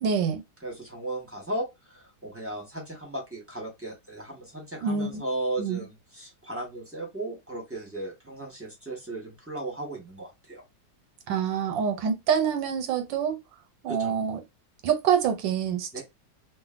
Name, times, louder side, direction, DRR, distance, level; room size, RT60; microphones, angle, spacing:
voice 1, 0.0-0.4 4.8-5.2 5.6-5.8 11.3-13.4 13.8-14.4 14.8-16.0, right 7 dB, 80° right, 1.4 m, -26 dB
voice 2, 0.6-10.6 13.9-14.1 15.9-16.0, right 2 dB, 10° right, 0.9 m, -36 dB
3.1 x 2.4 x 2.4 m
omnidirectional pair, 2.0 m